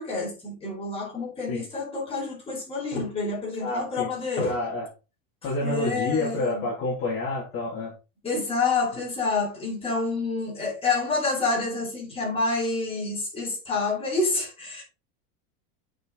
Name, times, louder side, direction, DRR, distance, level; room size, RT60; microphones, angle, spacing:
voice 1, 0.0-4.6 5.6-6.7 8.2-14.8, left 3 dB, 15° left, 5.0 m, -28 dB
voice 2, 3.6-4.1 4.4-4.9 5.4-7.9, left 2 dB, 30° left, 2.9 m, -28 dB
8.9 x 5.3 x 3.9 m
cardioid pair, 180°, 42 cm